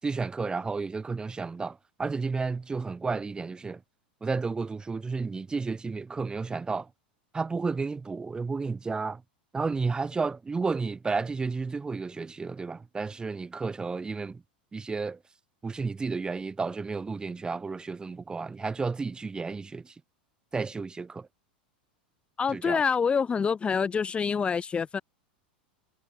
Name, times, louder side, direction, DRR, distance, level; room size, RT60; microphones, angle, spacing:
voice 1, 0.0-3.8 4.2-6.9 7.3-9.2 9.5-14.4 14.7-15.2 15.6-19.9 20.5-21.3 22.5-22.8, right 4 dB, 15° right, 6.8 m, -32 dB
voice 2, 22.4-25.0, left 6 dB, 20° left, 2.6 m, -26 dB
hypercardioid pair, 90°, 5 cm